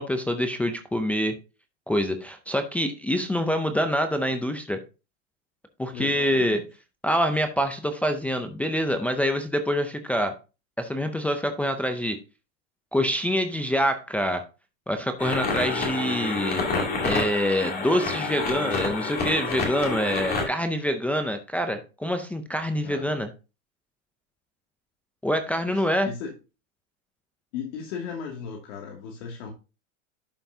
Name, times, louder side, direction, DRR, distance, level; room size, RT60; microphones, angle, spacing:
voice 1, 0.0-1.4 1.9-4.8 5.8-6.6 7.0-10.3 10.8-12.2 12.9-14.4 14.9-16.6 17.0-23.3 25.2-26.1, equal, 5° left, 5 dB, 0.4 m, -26 dB
voice 2, 5.9-6.6 17.8-17.9 22.8-23.1 25.7-26.3 27.5-29.5, left 6 dB, 60° left, 0 dB, 2.4 m, -36 dB
sound 1, 15.2-20.5, left 3 dB, 25° left, 2.5 m, -28 dB
11.5 x 5.6 x 2.7 m, 0.30 s
supercardioid pair, 140°, 39 cm